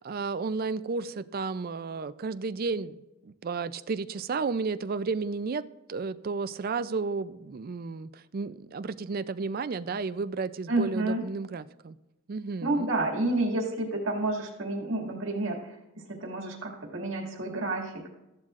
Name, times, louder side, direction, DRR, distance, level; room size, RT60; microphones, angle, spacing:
voice 1, 0.0-3.0 3.2-5.6 5.9-12.0 12.3-12.9, right 4 dB, 45° right, 13 dB, 0.4 m, -32 dB
voice 2, 10.7-11.2 12.6-18.2, right 2 dB, 65° right, 0 dB, 2.2 m, -30 dB
14.5 x 11.5 x 2.5 m, 0.96 s
head